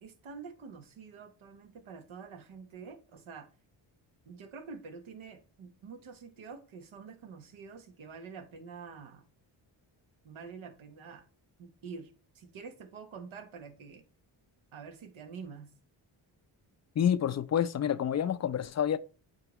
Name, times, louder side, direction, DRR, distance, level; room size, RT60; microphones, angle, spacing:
voice 1, 0.0-3.5 4.2-9.3 10.2-11.2 11.6-14.0 14.7-15.7, right 5 dB, 75° right, 1.2 m, -47 dB
voice 2, 17.0-19.0, left 9 dB, 35° left, 0.4 m, -28 dB
8.0 x 4.0 x 3.0 m
cardioid pair, 60°, 49 cm